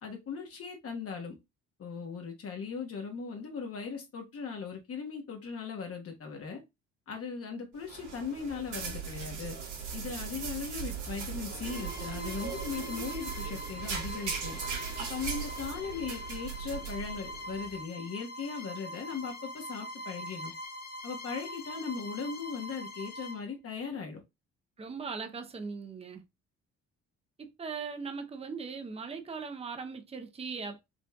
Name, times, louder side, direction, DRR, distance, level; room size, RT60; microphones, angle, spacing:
voice 1, 0.0-1.3 1.8-6.6 7.1-9.6 9.9-14.6 15.1-20.5 21.0-24.2, left 5 dB, 50° left, 1.1 m, -38 dB
sound 1, 7.8-17.8, right 6 dB, 80° right, 1.8 m, -38 dB
Bowed string instrument, 11.6-23.5, left 1 dB, 30° left, 0.8 m, -43 dB
voice 2, 24.8-26.2 27.4-30.8, right 5 dB, 20° right, 0.7 m, -39 dB
5.2 x 2.5 x 2.3 m
cardioid pair, 90°, 30 cm